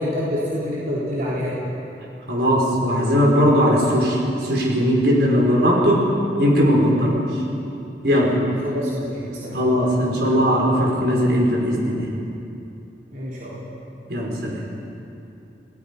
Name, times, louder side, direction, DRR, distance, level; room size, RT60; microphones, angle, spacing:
voice 1, 0.0-1.5 8.6-9.6 13.1-13.6, left 1 dB, 50° right, -8 dB, 4.0 m, -27 dB
voice 2, 2.3-6.1 6.4-7.2 8.0-8.4 9.5-12.1 14.1-14.6, equal, 70° right, -2 dB, 5.0 m, -19 dB
28.5 x 18.5 x 5.5 m, 2.8 s
head